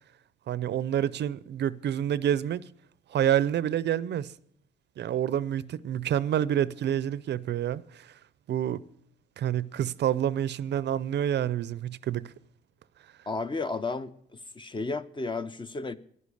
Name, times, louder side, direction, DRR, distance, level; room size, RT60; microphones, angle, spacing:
voice 1, 0.5-2.7 3.1-4.3 5.0-8.1 8.5-8.8 9.4-12.3, right 10 dB, 60° right, 0.5 m, -28 dB
voice 2, 13.3-14.1 14.5-16.0, left 3 dB, 25° left, 0.7 m, -32 dB
11.0 x 10.5 x 8.3 m
cardioid pair, 90°, 20 cm